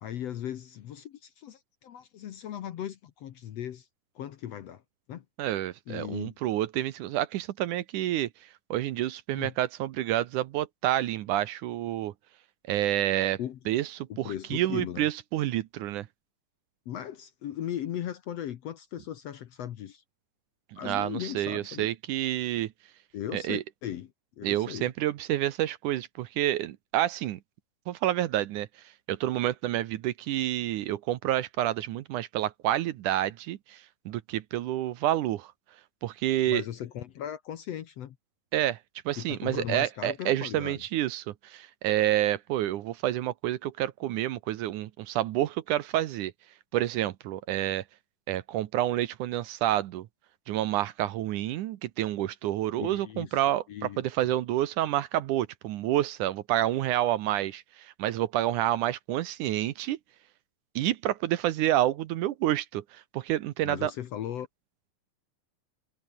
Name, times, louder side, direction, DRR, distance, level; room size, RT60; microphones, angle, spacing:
voice 1, 0.0-3.9 4.2-4.8 5.1-5.3 5.9-6.4 9.3-9.5 13.4-13.6 14.1-15.1 16.9-20.0 20.8-21.9 23.1-24.9 36.5-38.2 39.2-40.8 52.8-53.4 53.7-54.1 63.6-64.5, left 10 dB, 60° left, 1.8 m, -37 dB
voice 2, 5.4-8.3 8.7-12.1 12.7-13.4 13.7-16.1 20.8-22.7 23.3-23.6 24.4-27.4 27.9-28.7 29.1-35.5 36.0-36.6 38.5-38.8 39.1-46.3 46.7-47.8 48.3-50.1 50.5-60.0 60.8-63.9, right 13 dB, 70° right, 2.3 m, -29 dB
omnidirectional pair, 3.9 m